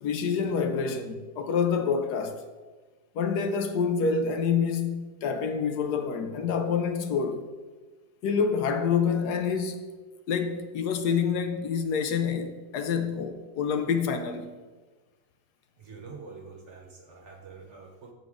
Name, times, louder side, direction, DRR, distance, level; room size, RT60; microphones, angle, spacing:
voice 1, 0.0-2.4 3.1-7.4 8.2-9.8 10.3-14.5, left 6 dB, 70° left, 1.1 m, -27 dB
voice 2, 15.8-18.1, right 4 dB, 50° right, 1.1 m, -46 dB
7.9 x 5.1 x 4.8 m
omnidirectional pair, 1.9 m